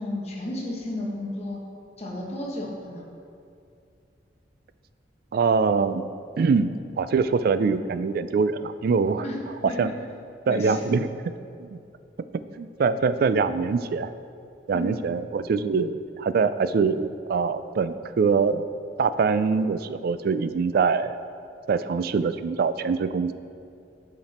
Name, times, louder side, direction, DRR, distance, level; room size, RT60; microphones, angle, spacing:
voice 1, 0.0-1.6 2.0-3.0 9.2-9.4 9.7-9.9 10.5-10.8 14.7-14.9, left 1 dB, 35° left, -2 dB, 1.3 m, -32 dB
voice 2, 5.3-6.1 6.4-6.7 7.0-9.2 9.6-9.9 10.5-11.1 11.6-11.8 12.3-14.1 14.7-18.7 19.0-21.1 21.7-23.3, right 5 dB, 55° right, 13 dB, 0.3 m, -23 dB
8.7 x 5.9 x 4.2 m, 2.5 s
head